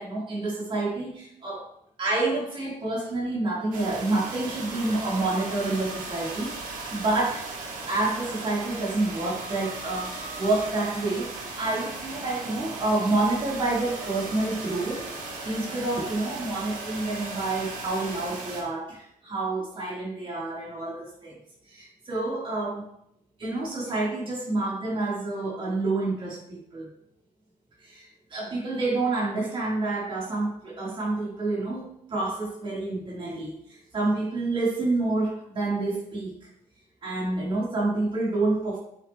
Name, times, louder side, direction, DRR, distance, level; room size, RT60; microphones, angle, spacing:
voice 1, 0.0-1.7 2.0-7.5 7.9-15.0 15.4-21.4 21.7-22.9 23.4-26.9 27.8-36.5 37.0-38.8, right 2 dB, 40° right, -5 dB, 3.7 m, -28 dB
sound 1, 3.7-18.6, right 3 dB, 80° right, 2.2 m, -37 dB
9.2 x 8.0 x 3.2 m, 0.74 s
cardioid pair, 135°, 14 cm